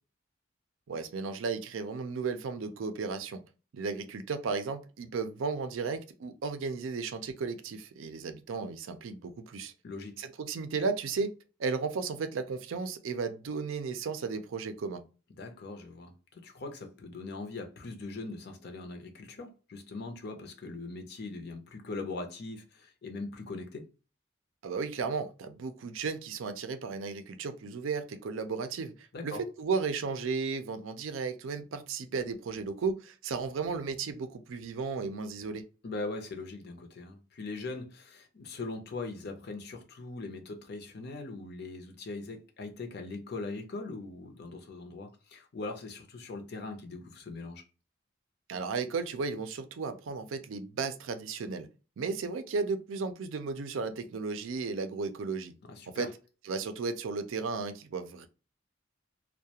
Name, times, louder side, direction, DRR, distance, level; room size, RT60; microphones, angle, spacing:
voice 1, 0.9-3.4 3.7-9.7 10.2-15.0 24.6-35.6 48.5-51.7 52.0-55.5 56.0-56.1 56.4-58.3, right 4 dB, 80° right, 0.4 m, -34 dB
voice 2, 9.8-10.2 15.4-23.9 29.1-29.4 35.8-47.7 55.7-56.1, left 3 dB, 55° left, 0.6 m, -41 dB
2.3 x 2.1 x 2.8 m
head